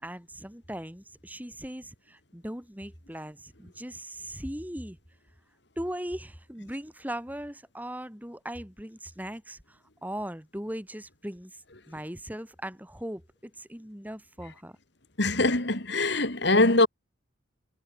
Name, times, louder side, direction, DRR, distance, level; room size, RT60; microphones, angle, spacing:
voice 1, 0.0-5.0 5.8-14.8, equal, 10° right, 3.6 m, -39 dB
voice 2, 15.2-16.9, left 2 dB, 55° left, 2.6 m, -22 dB
head